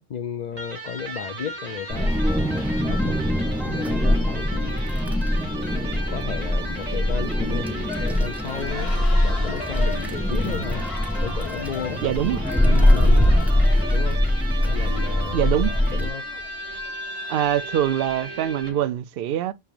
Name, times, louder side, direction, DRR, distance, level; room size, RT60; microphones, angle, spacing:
voice 1, 0.0-2.1 2.8-3.2 3.6-4.8 5.4-10.9 11.2-12.0 12.4-13.4 13.9-14.2 14.6-15.5 15.9-16.3, left 7 dB, 55° left, 0.5 m, -33 dB
Electric guitar, 0.5-18.9, right 1 dB, 40° right, 1.2 m, -36 dB
Wind, 1.9-16.1, left 1 dB, 5° right, 0.3 m, -22 dB
sound 1, 7.9-18.7, left 5 dB, 75° left, 1.2 m, -39 dB
voice 2, 12.0-12.4 15.3-15.7 17.3-19.5, right 11 dB, 70° right, 0.7 m, -24 dB
5.8 x 3.4 x 2.5 m
omnidirectional pair, 1.1 m